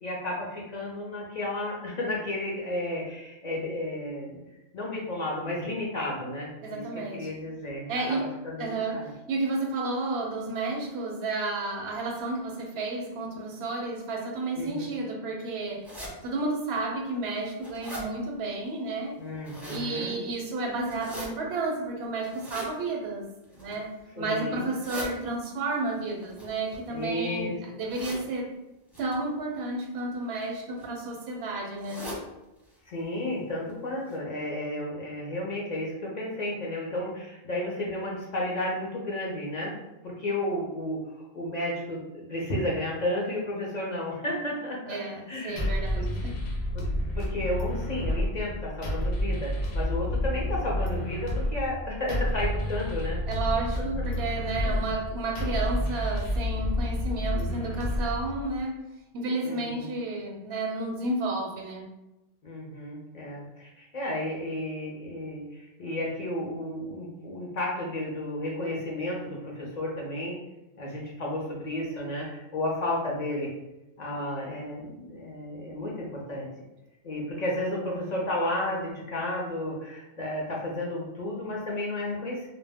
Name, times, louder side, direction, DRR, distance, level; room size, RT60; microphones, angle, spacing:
voice 1, 0.0-4.4 4.7-9.1 14.6-14.9 19.2-20.2 24.2-24.7 26.9-27.6 32.9-39.7 40.0-45.0 45.3-46.1 46.7-53.2 53.5-53.8 54.6-54.9 57.3-57.6 59.4-59.9 62.4-70.4 70.8-73.5 74.0-76.5 77.0-82.5, left 1 dB, 50° left, -3 dB, 0.6 m, -33 dB
voice 2, 6.6-7.3 7.9-8.2 8.6-15.9 16.2-19.2 19.7-23.3 23.6-28.5 29.0-32.0 44.9-46.3 53.3-58.8 59.1-61.9, right 2 dB, 85° right, 1 dB, 0.8 m, -32 dB
sound 1, 15.8-16.1 16.8-16.9 17.3-18.0 19.2-19.9 20.8-21.3 22.3-22.7 23.4-23.9 24.6-25.1 26.2-27.2 27.9-28.2 28.9-29.1 30.1-30.4 30.8-30.9 31.1-31.2 31.8-32.2 32.6-32.7 33.0-33.1 33.7-33.8 34.1-34.2, equal, ahead, 0.5 m, -40 dB
sound 2, 45.6-58.6, left 1 dB, 90° left, 0.8 m, -29 dB
2.1 x 2.0 x 3.4 m, 0.96 s
omnidirectional pair, 1.0 m